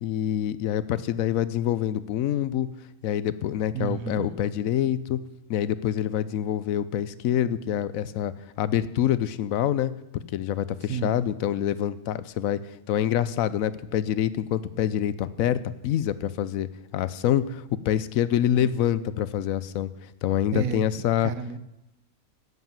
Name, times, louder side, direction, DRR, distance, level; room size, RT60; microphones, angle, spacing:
voice 1, 0.0-2.7 3.0-5.2 5.5-8.3 8.6-12.6 12.9-19.9 20.2-21.3, left 11 dB, 75° left, 16 dB, 1.0 m, -26 dB
voice 2, 3.7-4.3 10.8-11.1 18.6-18.7 20.5-21.6, right 7 dB, 75° right, 11 dB, 1.2 m, -32 dB
11.0 x 7.9 x 7.4 m, 0.86 s
omnidirectional pair, 1.5 m